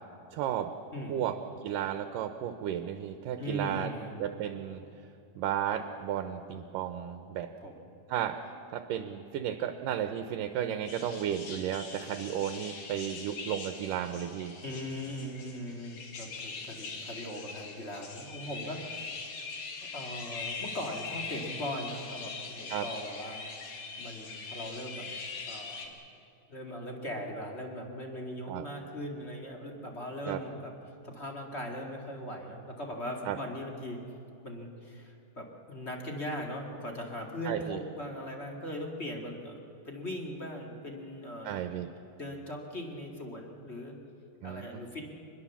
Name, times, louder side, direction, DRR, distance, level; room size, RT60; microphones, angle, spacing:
voice 1, 0.3-0.7 1.1-3.9 4.2-4.8 5.4-7.5 8.1-8.4 8.7-14.6 22.7-22.9 28.5-28.6 30.3-30.4 33.3-33.4 37.5-37.8 41.4-41.9 44.4-44.7, right 10 dB, 75° right, 8 dB, 2.3 m, -33 dB
voice 2, 0.9-1.2 3.4-4.2 7.6-7.8 14.6-19.1 19.8-23.4 23.8-25.1 25.5-26.0 26.5-30.7 31.0-34.0 34.4-39.6 39.8-41.7 42.2-43.9 44.4-45.1, equal, 25° left, 1 dB, 1.6 m, -39 dB
sound 1, 10.9-25.9, left 4 dB, 55° left, 3.2 m, -42 dB
25.0 x 21.0 x 7.2 m, 2.8 s
omnidirectional pair, 4.1 m